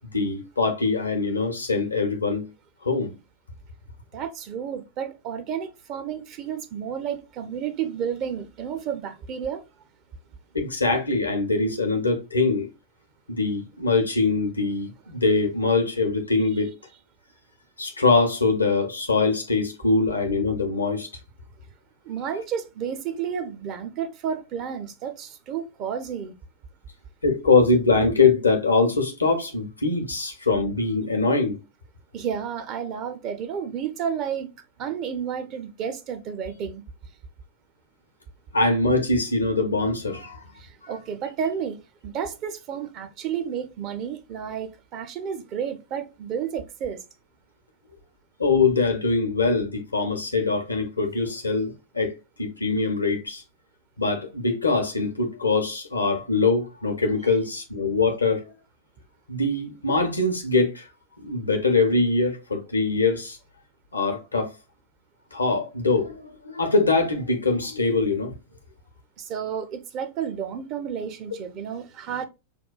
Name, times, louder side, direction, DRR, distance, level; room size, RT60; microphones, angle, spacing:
voice 1, 0.1-2.4 2.8-3.1 10.5-12.7 13.3-16.7 17.8-21.1 27.2-31.6 38.5-40.4 48.4-53.4 54.0-58.4 59.3-60.9 61.2-63.4 63.9-64.5 65.3-68.3, left 3 dB, 80° left, 0.7 m, -23 dB
voice 2, 4.1-9.6 22.0-26.3 32.1-34.5 34.8-36.8 40.6-47.0 69.2-72.3, right 8 dB, 40° right, 0.5 m, -31 dB
5.2 x 2.2 x 2.3 m
figure-of-eight pair, 90°, 0 cm